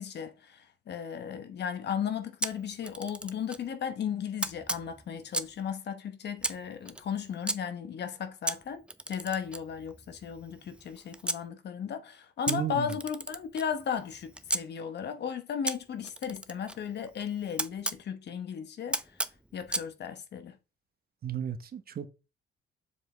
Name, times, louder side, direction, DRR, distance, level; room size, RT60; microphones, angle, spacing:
voice 1, 0.0-19.0 19.5-20.6, left 7 dB, 60° left, 0.9 m, -35 dB
Camera, 2.4-3.7 4.4-5.6 6.4-7.6 8.5-11.4 12.5-14.6 15.7-18.0 18.9-19.9, right 1 dB, 5° right, 0.4 m, -36 dB
voice 2, 12.5-12.9 21.2-22.1, right 9 dB, 50° right, 0.9 m, -34 dB
7.2 x 4.2 x 3.2 m
cardioid pair, 90°, 20 cm